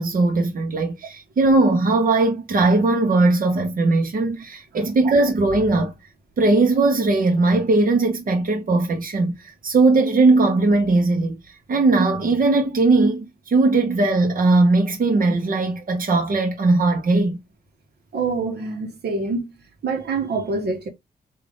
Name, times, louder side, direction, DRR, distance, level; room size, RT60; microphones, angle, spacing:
voice 1, 0.0-5.9 6.4-11.4 11.7-17.4, right 3 dB, 55° right, 1.1 m, -19 dB
voice 2, 18.1-19.5 19.8-20.9, right 4 dB, 70° right, 1.3 m, -25 dB
3.9 x 2.8 x 3.4 m
cardioid pair, 70°, 17 cm